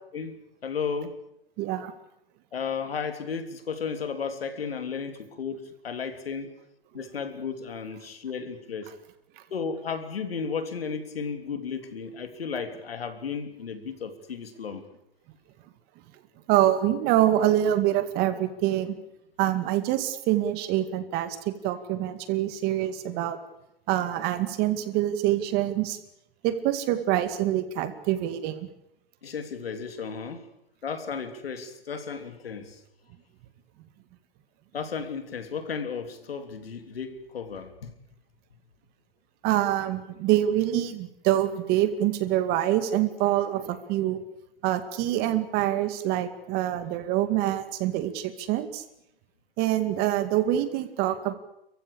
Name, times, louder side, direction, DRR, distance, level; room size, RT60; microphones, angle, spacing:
voice 1, 0.1-1.2 2.5-6.5 6.9-8.9 9.5-14.8 29.2-30.4 30.8-32.8 34.7-37.9, left 6 dB, 85° left, 3.5 m, -34 dB
voice 2, 1.6-1.9 16.5-18.9 19.4-21.4 21.6-23.4 23.9-26.0 26.4-28.7 39.4-44.2 44.6-48.8 49.6-51.3, right 13 dB, 35° right, 2.3 m, -25 dB
29.5 x 15.0 x 8.6 m
hypercardioid pair, 140°, 29 cm